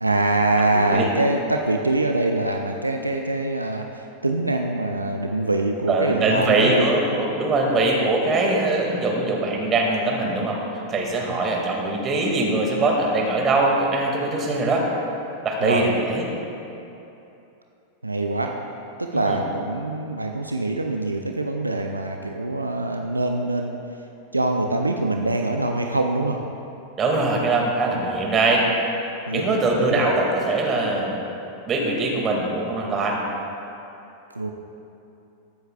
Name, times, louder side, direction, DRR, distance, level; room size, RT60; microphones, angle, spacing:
voice 1, 0.0-6.9 15.6-15.8 18.0-18.5 19.0-23.8 24.3-26.4 29.3-29.4 30.0-30.1 34.3-34.5, right 2 dB, 85° right, 3 dB, 0.5 m, -24 dB
voice 2, 0.7-1.1 5.9-10.6 10.9-14.9 15.4-16.3 19.1-19.4 27.0-28.6 29.3-31.2 31.7-33.2, right 2 dB, 25° right, -1 dB, 2.1 m, -22 dB
21.5 x 7.9 x 2.4 m, 2.9 s
figure-of-eight pair, 90°, 0 cm